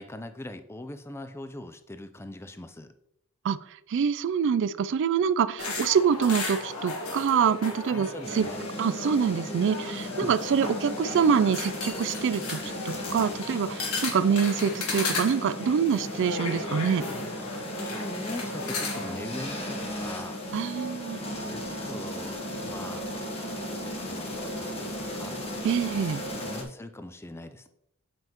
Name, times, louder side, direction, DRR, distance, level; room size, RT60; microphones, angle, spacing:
voice 1, 0.0-2.9 7.9-8.6 10.2-10.3 17.7-20.4 21.4-22.4 22.6-23.0 23.7-25.4 26.3-27.7, left 1 dB, 10° left, 9 dB, 0.4 m, -41 dB
voice 2, 3.9-8.1 8.3-8.5 8.8-12.6 12.9-17.0 20.5-21.2 25.6-26.2, right 7 dB, 55° right, 15 dB, 0.3 m, -25 dB
sound 1, 5.6-19.2, left 3 dB, 70° left, 1.5 m, -35 dB
sound 2, 8.2-26.6, equal, 25° left, 1.1 m, -36 dB
7.7 x 5.5 x 3.0 m, 0.75 s
head